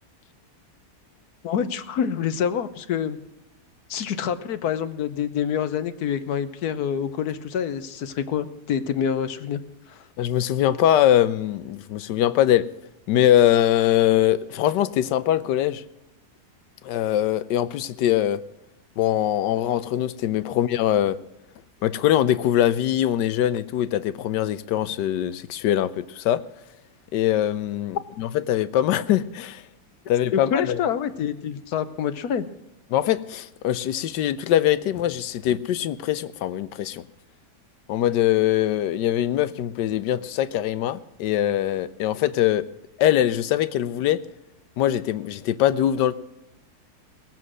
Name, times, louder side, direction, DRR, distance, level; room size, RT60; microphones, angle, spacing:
voice 1, 1.4-3.2 3.9-9.6 9.9-10.0 30.3-32.5, left 8 dB, 70° left, 1.3 m, -26 dB
voice 2, 10.2-12.7 13.1-15.8 16.8-18.4 19.0-21.2 21.8-26.4 27.1-29.6 30.1-30.8 32.9-37.0 37.9-42.7 43.0-44.2 44.8-46.1, left 12 dB, 85° left, 1.3 m, -22 dB
19.5 x 7.7 x 6.1 m
omnidirectional pair, 1.8 m